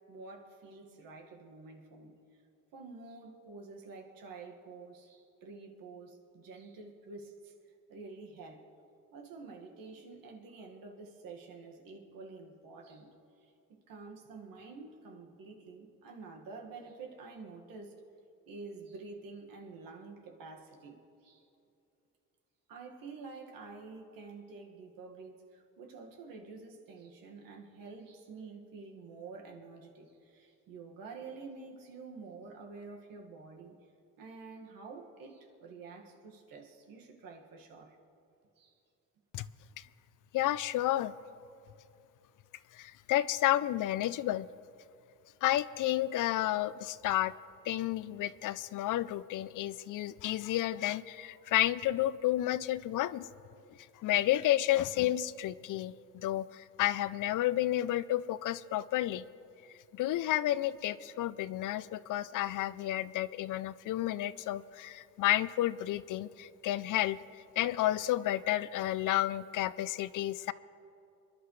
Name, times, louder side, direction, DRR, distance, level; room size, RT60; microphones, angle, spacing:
voice 1, 0.1-2.4 2.7-8.7 9.1-18.0 18.5-21.5 22.7-33.8 34.2-38.0 38.6-38.7, right 4 dB, 80° right, 1 dB, 1.9 m, -49 dB
voice 2, 40.3-41.1 42.7-44.5 45.4-47.3 47.6-53.3 54.0-59.2 59.9-70.5, left 14 dB, 65° left, 17 dB, 0.5 m, -31 dB
28.0 x 11.5 x 3.2 m, 2.7 s
cardioid pair, 115°, 33 cm